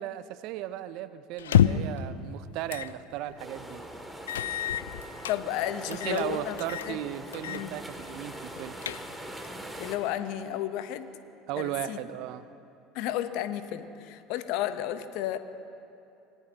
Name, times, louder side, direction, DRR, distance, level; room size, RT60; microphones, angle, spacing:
voice 1, 0.0-3.9 5.9-8.8 11.5-12.5, right 12 dB, 60° right, 13 dB, 0.7 m, -36 dB
sound 1, 1.4-2.0 2.7-2.9 3.3-3.4 4.3-5.4 5.9-6.3 6.6-6.9 7.3-7.7 8.0-8.1 8.6-9.3, left 10 dB, 80° left, 0.4 m, -27 dB
sound 2, 3.4-10.0, right 1 dB, 5° right, 2.4 m, -42 dB
voice 2, 5.3-6.6 6.9-7.0 7.5-7.8 9.8-11.1 11.6-12.0 12.9-15.4, left 12 dB, 65° left, 11 dB, 0.9 m, -32 dB
26.0 x 18.5 x 2.9 m, 2.7 s
hypercardioid pair, 70°, 0 cm